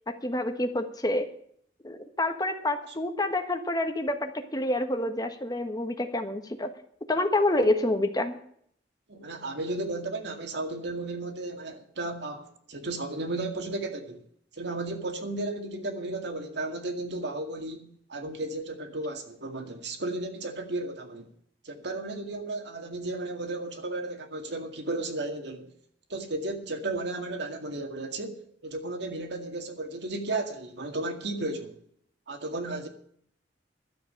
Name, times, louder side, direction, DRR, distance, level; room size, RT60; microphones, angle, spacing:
voice 1, 0.1-1.3 1.8-6.7 7.1-8.4, left 1 dB, 20° left, 1.2 m, -28 dB
voice 2, 9.1-14.2 14.5-21.3 21.6-25.7 26.1-31.8 32.3-32.9, right 2 dB, 65° right, 2.1 m, -34 dB
12.5 x 7.9 x 8.5 m
head